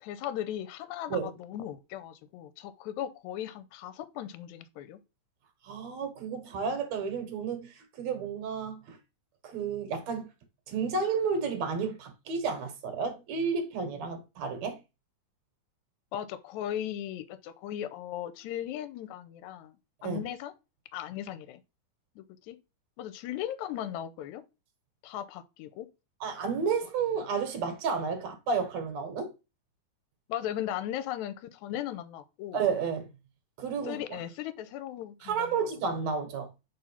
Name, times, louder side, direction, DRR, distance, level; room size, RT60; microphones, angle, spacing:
voice 1, 0.0-5.0 16.1-19.8 20.0-20.5 20.9-21.6 22.2-22.6 23.0-24.4 25.0-25.9 30.3-32.6 33.8-35.6 35.9-36.1, left 11 dB, 85° left, 1.9 m, -37 dB
voice 2, 5.6-9.0 9.4-10.3 10.7-14.8 20.0-20.2 26.2-29.3 32.5-33.1 33.6-34.2 35.2-36.5, right 5 dB, 70° right, 2.4 m, -31 dB
4.5 x 3.8 x 5.5 m
omnidirectional pair, 3.4 m